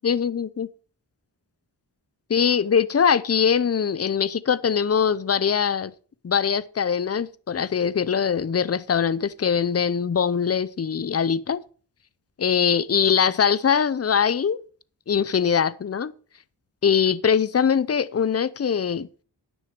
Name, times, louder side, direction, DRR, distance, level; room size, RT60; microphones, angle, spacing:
voice 1, 0.0-0.7 2.3-5.9 6.2-11.6 12.4-14.6 15.1-16.1 16.8-19.1, left 7 dB, 35° left, 0.6 m, -22 dB
10.0 x 6.3 x 6.5 m
wide cardioid pair, 75°, 42 cm